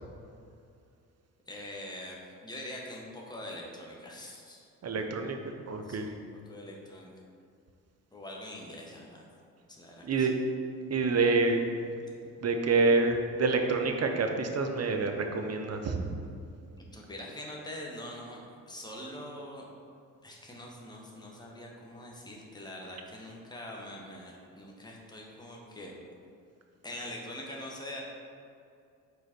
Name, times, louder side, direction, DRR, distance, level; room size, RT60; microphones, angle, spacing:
voice 1, 1.5-4.7 5.8-6.1 6.4-7.1 8.1-9.3 9.7-10.3 16.9-19.7 20.2-26.1 26.8-28.0, left 1 dB, 10° left, -2 dB, 1.3 m, -43 dB
voice 2, 4.8-5.4 5.7-6.1 10.0-10.3 10.9-11.6 12.4-16.1, right 3 dB, 40° right, 4 dB, 0.8 m, -27 dB
5.1 x 4.1 x 4.5 m, 2.4 s
hypercardioid pair, 55°, 40 cm